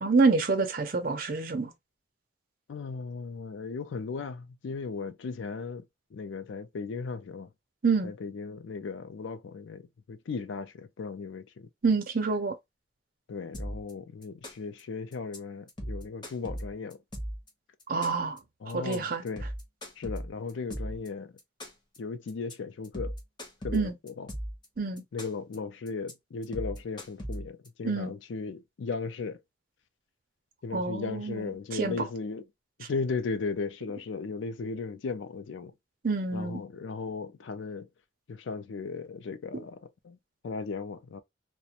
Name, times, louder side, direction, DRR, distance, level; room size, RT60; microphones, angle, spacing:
voice 1, 0.0-1.7 7.8-8.1 11.8-12.5 17.9-18.4 18.7-19.2 23.7-23.9 24.8-25.0 27.8-28.1 30.7-32.1 36.0-36.6 39.5-39.6, right 4 dB, 50° right, 0.6 m, -27 dB
voice 2, 2.7-5.8 6.1-7.5 8.0-11.7 13.3-17.0 18.6-19.5 20.0-21.4 22.0-23.2 23.6-24.3 25.1-29.4 30.6-32.5 32.9-35.7 36.3-37.9 38.3-40.2 40.4-41.2, left 4 dB, 85° left, 0.4 m, -36 dB
sound 1, 13.5-13.9 14.2-14.8 15.1-15.4 15.7-17.5 17.8-18.4 18.7-19.0 19.3-21.1 21.4-22.0 22.3-22.5 22.8-24.7 25.0-25.6 25.9-26.1 26.4-27.7, equal, 25° left, 0.8 m, -37 dB
2.5 x 2.1 x 2.8 m
head